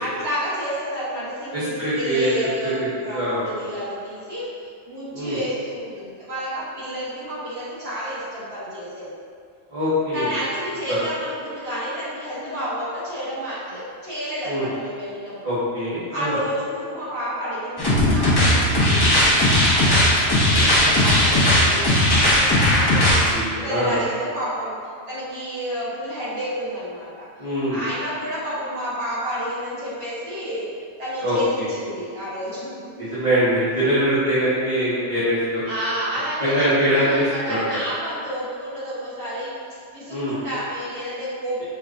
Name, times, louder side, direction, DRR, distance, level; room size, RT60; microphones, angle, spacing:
voice 1, 0.0-4.5 4.9-9.1 10.1-15.4 16.1-27.3 27.7-30.7 31.0-33.2 35.7-41.6, equal, 60° right, -11 dB, 1.7 m, -30 dB
voice 2, 1.5-2.3 2.6-3.4 5.1-5.4 9.7-10.3 10.9-11.0 14.4-14.7 15.4-16.4 23.2-24.0 27.4-27.8 31.2-31.7 33.0-35.6 36.4-37.6 40.1-40.4, equal, 25° right, -17 dB, 1.6 m, -23 dB
sound 1, 17.8-23.3, left 1 dB, 25° left, 0.7 m, -17 dB
5.7 x 3.5 x 2.6 m, 2.2 s
omnidirectional pair, 1.2 m